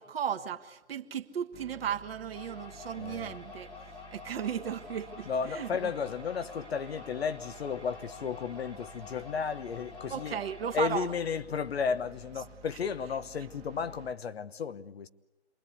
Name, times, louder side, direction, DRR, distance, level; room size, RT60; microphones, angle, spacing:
voice 1, 0.0-3.7 4.1-5.9 10.1-11.1, right 8 dB, 60° right, 1.8 m, -35 dB
sound 1, 1.5-14.1, right 4 dB, 25° right, 1.3 m, -52 dB
sound 2, 2.3-11.1, left 5 dB, 15° left, 1.8 m, -48 dB
voice 2, 3.0-3.4 5.3-10.4 10.7-15.1, left 6 dB, 65° left, 1.2 m, -33 dB
28.0 x 21.5 x 8.4 m
figure-of-eight pair, 135°, 34 cm